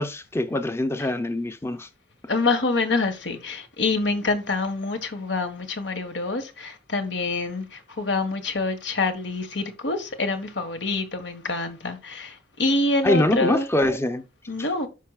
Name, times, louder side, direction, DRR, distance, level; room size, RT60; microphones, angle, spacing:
voice 1, 0.0-1.9 13.0-14.2 14.6-14.7, left 1 dB, 15° left, 0.5 m, -24 dB
voice 2, 2.3-13.7 14.5-14.9, left 3 dB, 90° left, 1.5 m, -26 dB
13.0 x 5.5 x 2.3 m
head